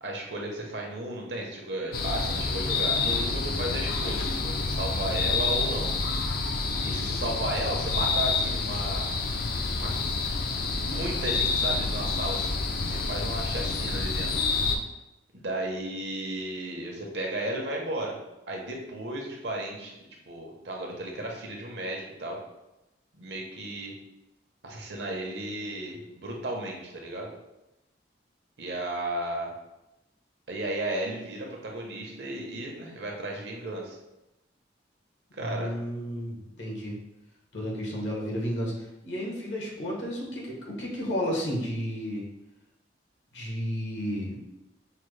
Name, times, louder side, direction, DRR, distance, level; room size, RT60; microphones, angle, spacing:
voice 1, 0.0-5.9 6.8-9.0 9.7-9.9 10.8-14.3 15.3-18.2 18.5-20.0 20.3-22.4 23.1-23.9 24.6-27.3 28.6-29.5 30.5-34.0 35.3-35.7, right 1 dB, 65° right, -1 dB, 0.9 m, -34 dB
sound 1, 1.9-14.8, left 4 dB, 55° left, 0.4 m, -28 dB
voice 2, 35.4-37.0 37.5-38.7 39.0-42.2 43.3-44.4, equal, 80° left, -2 dB, 1.1 m, -32 dB
5.6 x 2.1 x 3.2 m, 0.94 s
head